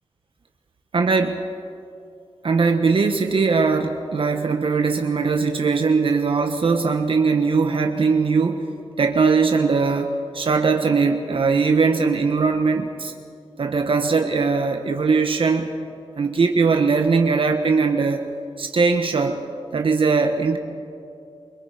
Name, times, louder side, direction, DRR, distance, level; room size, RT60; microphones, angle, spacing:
voice 1, 0.9-1.5 2.4-8.6 9.0-13.1 13.6-15.7 16.2-18.2 18.6-19.4 19.7-20.6, right 4 dB, 60° right, 5 dB, 1.3 m, -20 dB
25.0 x 24.5 x 5.1 m, 2.5 s
wide cardioid pair, 110°, 10 cm